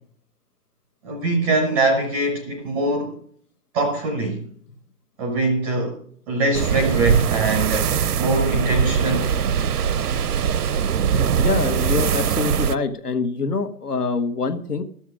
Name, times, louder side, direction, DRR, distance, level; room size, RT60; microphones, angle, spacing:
voice 1, 1.0-3.2 3.7-4.5 5.2-6.0 6.3-9.4, right 2 dB, 5° right, 0.5 m, -23 dB
sound 1, 6.5-12.8, right 7 dB, 80° right, 0.6 m, -21 dB
voice 2, 11.4-14.8, left 4 dB, 80° left, 1.6 m, -25 dB
13.0 x 7.2 x 6.2 m
figure-of-eight pair, 135°, 46 cm